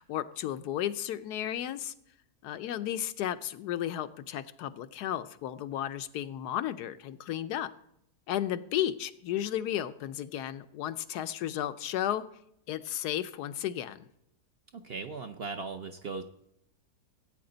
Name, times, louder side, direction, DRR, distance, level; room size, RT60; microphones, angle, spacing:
voice 1, 0.0-1.9 2.4-7.7 8.3-12.2 12.7-14.1, left 11 dB, 90° left, 12 dB, 1.2 m, -33 dB
voice 2, 14.7-16.2, right 4 dB, 55° right, 7 dB, 0.7 m, -38 dB
17.0 x 8.6 x 3.9 m, 0.76 s
omnidirectional pair, 1.7 m